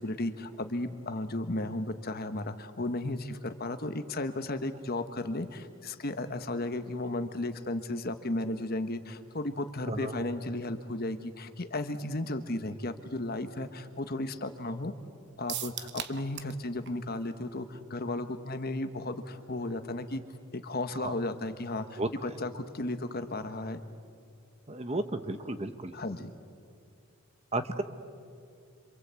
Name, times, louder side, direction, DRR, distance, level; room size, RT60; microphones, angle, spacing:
voice 1, 0.0-14.9 15.4-20.2 20.5-23.8 25.9-26.3, left 2 dB, 40° left, 9 dB, 1.2 m, -34 dB
voice 2, 9.9-10.3 21.0-21.1 22.0-22.1 24.7-25.9 27.5-27.8, right 2 dB, 30° right, 9 dB, 1.2 m, -33 dB
sound 1, 15.5-16.6 16.9-17.0 17.3-17.4, right 10 dB, 50° right, 1.2 m, -37 dB
27.5 x 26.0 x 8.3 m, 2.3 s
head